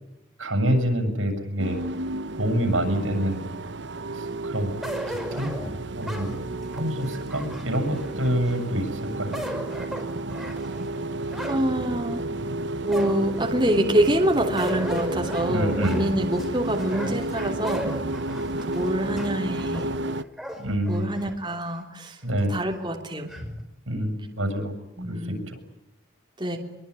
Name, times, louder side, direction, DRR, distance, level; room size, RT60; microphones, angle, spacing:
voice 1, 0.4-1.8 2.4-3.5 4.2-4.7 5.1-5.5 5.9-6.4 6.7-9.4 15.5-16.0 20.6-21.1 22.2-22.5 23.9-24.7 25.0-25.6, equal, 90° right, 8 dB, 7.6 m, -26 dB
sound 1, 1.6-20.2, right 2 dB, 65° right, 1.0 m, -32 dB
sound 2, 4.8-8.6 9.1-11.7 12.1-12.2 12.9-13.5 14.6-21.6 22.0-22.1 23.3-23.6, equal, ahead, 5.6 m, -36 dB
voice 2, 11.5-12.2 12.8-17.9 18.6-19.9 20.9-22.2 22.5-23.3 25.0-25.4 26.4-26.6, right 1 dB, 25° right, 2 dB, 3.2 m, -26 dB
25.5 x 23.0 x 9.9 m, 0.91 s
head